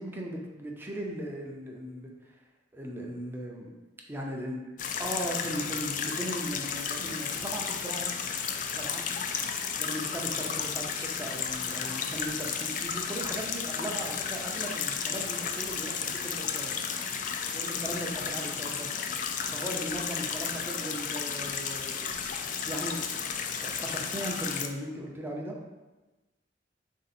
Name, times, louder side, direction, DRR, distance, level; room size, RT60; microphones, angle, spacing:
voice 1, 0.0-2.4 2.7-3.7 4.1-4.6 5.0-8.1 8.8-9.1 9.8-17.2 17.5-18.9 19.5-25.6, right 1 dB, 10° right, -1 dB, 0.5 m, -38 dB
sound 1, 4.8-24.7, left 6 dB, 45° left, 0.3 m, -33 dB
3.7 x 2.7 x 4.1 m, 1.1 s
head